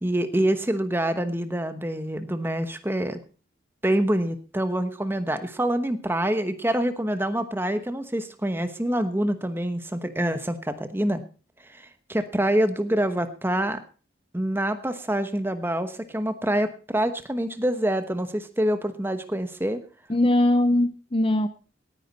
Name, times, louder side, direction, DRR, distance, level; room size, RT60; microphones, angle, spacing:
voice 1, 0.0-3.2 3.8-11.2 11.6-13.8 14.3-19.8, right 1 dB, 10° right, 1.0 m, -26 dB
voice 2, 20.1-21.5, left 1 dB, 25° left, 0.6 m, -21 dB
18.0 x 9.7 x 4.1 m
head